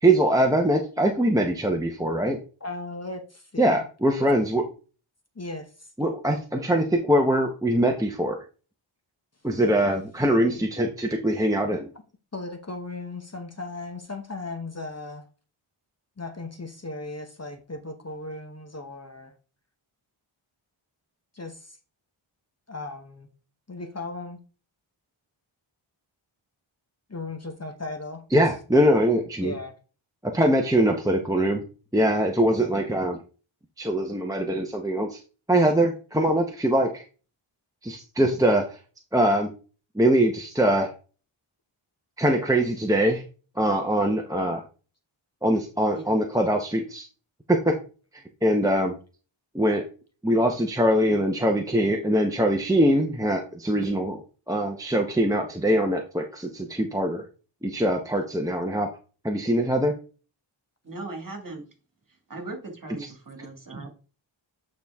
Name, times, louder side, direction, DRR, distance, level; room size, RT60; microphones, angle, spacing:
voice 1, 0.0-2.4 3.6-4.6 6.0-8.4 9.4-11.9 28.3-29.5 30.2-31.6 31.9-33.2 33.8-35.2 35.5-37.0 37.8-38.8 39.1-39.5 39.9-40.9 42.2-43.2 43.6-44.6 45.4-47.1 47.5-47.7 48.1-49.0 49.5-49.8 50.2-54.2 54.5-57.2 57.6-58.9 59.2-59.9, right 1 dB, 5° right, 0.9 m, -22 dB
voice 2, 2.6-3.8 5.4-5.9 12.3-15.3 16.2-19.3 21.3-21.8 22.7-23.3 23.7-24.4 27.1-28.2 29.4-29.7, left 2 dB, 30° left, 0.9 m, -36 dB
voice 3, 60.8-61.6 62.3-63.9, right 2 dB, 40° right, 2.2 m, -38 dB
8.6 x 4.3 x 3.5 m
wide cardioid pair, 85°, 49 cm